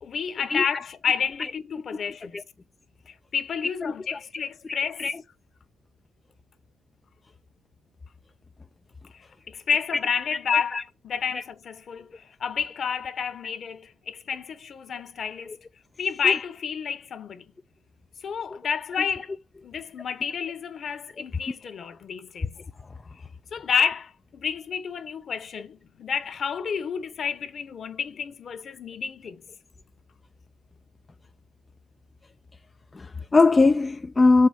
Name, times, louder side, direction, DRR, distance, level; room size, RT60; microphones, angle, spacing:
voice 1, 0.0-2.4 3.1-5.1 9.1-15.5 16.0-17.4 18.2-19.3 19.6-22.6 23.5-29.4, left 6 dB, 55° left, 1.1 m, -30 dB
voice 2, 32.9-34.5, left 3 dB, 25° left, 0.4 m, -20 dB
7.1 x 4.9 x 5.8 m
cardioid pair, 90°, 0 cm